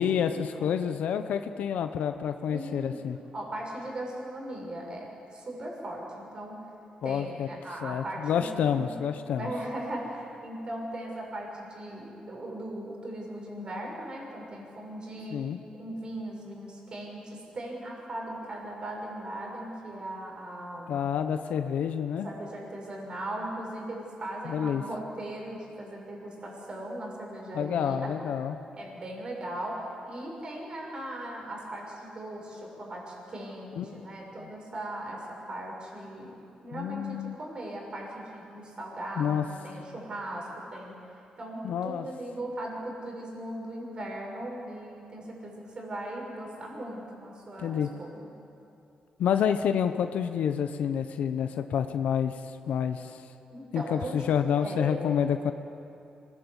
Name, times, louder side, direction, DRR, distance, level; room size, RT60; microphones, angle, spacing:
voice 1, 0.0-3.2 7.0-7.5 7.8-9.5 15.3-15.6 20.9-22.3 24.4-24.8 27.5-28.6 33.8-34.1 36.7-37.4 39.2-39.4 41.6-42.1 47.6-47.9 49.2-52.3 52.7-53.2 53.7-55.5, left 8 dB, 85° left, 8 dB, 0.9 m, -28 dB
voice 2, 2.5-3.0 3.3-6.7 7.0-9.0 9.3-15.5 15.8-21.1 22.2-28.0 28.8-48.2 53.5-54.2 54.6-55.0, right 1 dB, 40° right, -1 dB, 6.5 m, -38 dB
26.0 x 20.0 x 8.2 m, 2.7 s
cardioid pair, 125°, 2 cm